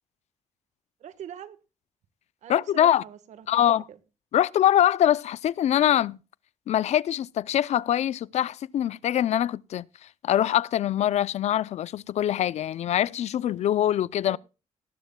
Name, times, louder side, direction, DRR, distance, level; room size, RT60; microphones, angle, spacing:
voice 1, 1.0-1.6 2.4-4.0 14.2-14.4, right 9 dB, 75° right, 1.4 m, -43 dB
voice 2, 2.5-3.0 3.5-3.8 4.3-6.2 6.7-9.9 10.2-14.4, left 11 dB, 65° left, 0.5 m, -23 dB
19.0 x 11.5 x 2.2 m
cardioid pair, 125°, 12 cm